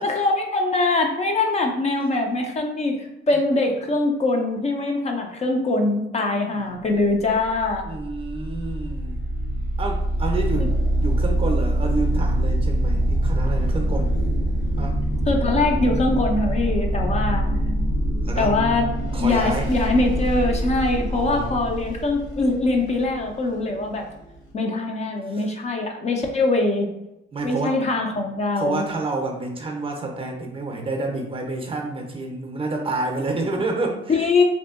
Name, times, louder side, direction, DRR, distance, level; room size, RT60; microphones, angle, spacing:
voice 1, 0.0-7.9 10.6-10.7 15.3-17.5 18.4-18.9 19.2-24.1 24.5-26.9 27.4-28.8 34.1-34.4, left 2 dB, 35° left, 2 dB, 0.4 m, -22 dB
sound 1, 7.1-24.5, right 1 dB, 75° left, 0.9 m, -24 dB
voice 2, 7.8-9.2 9.8-10.7 11.0-14.2 14.8-14.9 18.2-18.5 19.1-19.7 21.1-21.6 25.3-25.5 27.3-27.7 28.6-34.2, right 3 dB, 30° right, 2 dB, 0.5 m, -29 dB
2.7 x 2.5 x 2.4 m, 0.88 s
cardioid pair, 90°, 20 cm